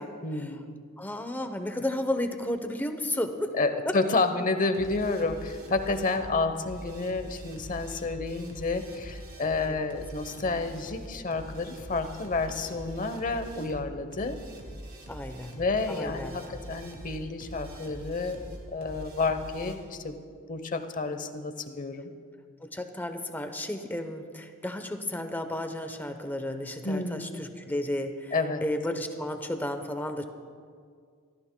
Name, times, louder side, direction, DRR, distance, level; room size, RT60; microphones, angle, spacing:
voice 1, 0.2-0.8 3.5-14.4 15.5-20.2 20.5-22.0 26.8-27.3 28.3-28.6, left 3 dB, 40° left, 9 dB, 0.9 m, -30 dB
voice 2, 1.0-3.5 3.9-4.0 9.7-9.8 15.1-15.5 15.9-16.4 22.6-28.3 28.6-30.3, left 1 dB, 10° left, 7 dB, 0.8 m, -33 dB
sound 1, 4.7-19.8, right 1 dB, 50° right, 2.5 m, -44 dB
24.0 x 14.0 x 2.2 m, 2.1 s
head